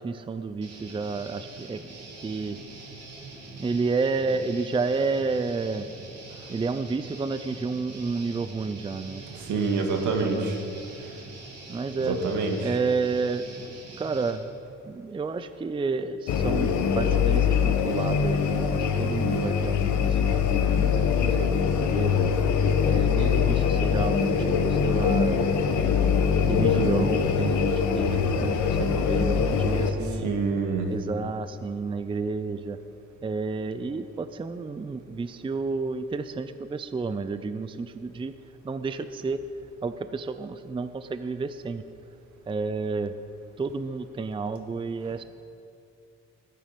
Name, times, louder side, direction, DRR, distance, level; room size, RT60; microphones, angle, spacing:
voice 1, 0.0-1.8 2.2-2.6 3.6-5.9 6.5-9.2 10.2-10.6 11.7-12.2 12.6-14.5 14.8-22.3 22.9-24.4 24.6-25.5 26.5-30.3 30.9-32.8 33.2-38.3 38.6-39.4 39.8-41.8 42.5-43.1 43.6-45.2, right 4 dB, 15° right, 11 dB, 0.4 m, -31 dB
Guitar, 0.6-14.3, right 2 dB, 55° right, 2.8 m, -44 dB
voice 2, 9.3-10.6 12.0-12.8 23.2-23.3 30.0-30.9, right 4 dB, 75° right, 3 dB, 1.9 m, -27 dB
sound 1, 16.3-29.9, left 6 dB, 75° left, 1.1 m, -23 dB
14.0 x 9.3 x 5.2 m, 2.5 s
cardioid pair, 90°, 30 cm